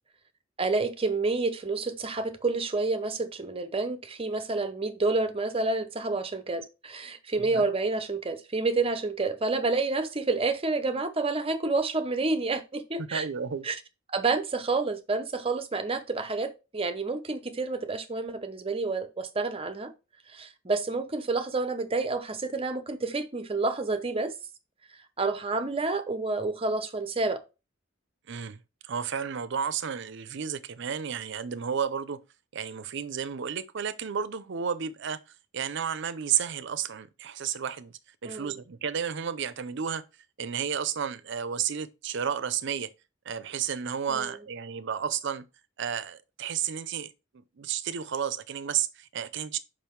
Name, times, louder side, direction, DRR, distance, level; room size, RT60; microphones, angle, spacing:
voice 1, 0.6-13.3 13.6-13.8 14.1-19.9 20.3-24.3 25.2-27.4 38.2-38.6 44.1-44.3, right 3 dB, 30° right, 0.7 m, -29 dB
voice 2, 13.0-13.6 28.3-32.2 32.5-35.2 35.5-40.0 40.4-42.9 43.2-45.5 45.8-47.1 47.6-49.6, right 8 dB, 65° right, 0.5 m, -32 dB
5.4 x 5.1 x 4.5 m
head